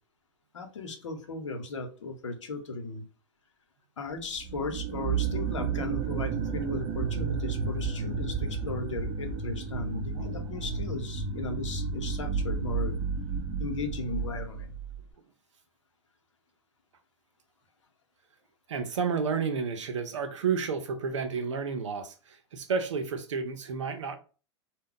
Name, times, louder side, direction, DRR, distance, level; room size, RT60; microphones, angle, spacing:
voice 1, 0.5-3.0 4.0-13.0 13.6-14.8, left 3 dB, 90° left, 0.7 m, -36 dB
sound 1, 4.4-15.0, right 5 dB, 35° right, 0.6 m, -32 dB
voice 2, 9.9-10.5 18.7-24.2, right 5 dB, 85° right, 0.6 m, -31 dB
2.2 x 2.0 x 3.7 m
hypercardioid pair, 105°, 15 cm